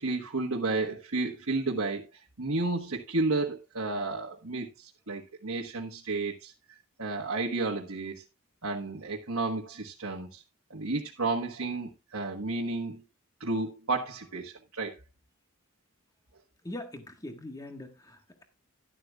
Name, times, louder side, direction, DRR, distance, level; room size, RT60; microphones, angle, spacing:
voice 1, 0.0-2.0 2.4-6.5 7.0-8.2 8.6-10.4 10.7-13.0 13.4-14.9, right 3 dB, 80° right, 1.4 m, -32 dB
voice 2, 16.6-18.4, left 1 dB, 15° left, 1.6 m, -42 dB
12.0 x 11.5 x 2.4 m
head